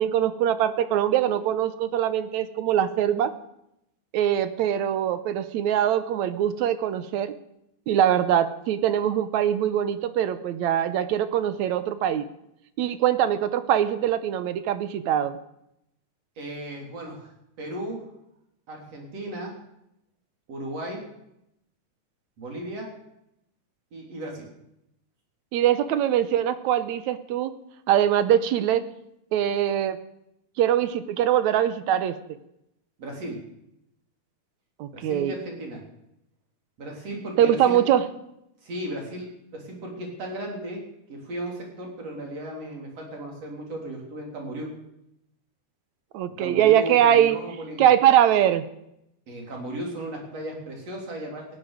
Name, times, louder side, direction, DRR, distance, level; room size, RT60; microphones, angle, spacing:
voice 1, 0.0-3.3 4.1-7.3 7.9-12.2 12.8-15.4 25.5-27.5 27.9-28.9 29.3-30.0 30.6-32.1 34.8-35.3 37.4-38.0 46.1-47.4 47.8-48.6, right 10 dB, 75° right, 12 dB, 2.0 m, -22 dB
voice 2, 16.4-18.1 18.7-19.5 20.5-21.0 22.4-22.9 23.9-24.5 33.0-33.4 34.9-35.8 36.8-37.8 38.6-40.8 41.1-44.7 46.4-47.8 49.3-51.4, right 1 dB, 50° right, 0 dB, 4.8 m, -35 dB
18.5 x 15.5 x 5.1 m, 0.80 s
omnidirectional pair, 3.7 m